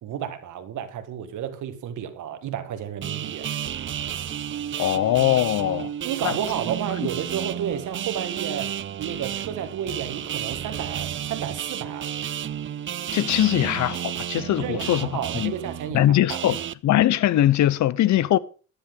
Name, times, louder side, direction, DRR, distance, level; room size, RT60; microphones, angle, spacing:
voice 1, 0.0-3.5 6.0-12.1 14.5-16.6, right 9 dB, 80° right, 1.7 m, -32 dB
sound 1, 3.0-16.7, right 10 dB, 40° right, 0.5 m, -32 dB
voice 2, 4.8-5.9 6.2-6.3 13.1-15.1 15.3-15.5 15.9-16.6 16.8-18.4, left 13 dB, 70° left, 0.7 m, -21 dB
13.5 x 10.0 x 3.8 m
cardioid pair, 90°, 30 cm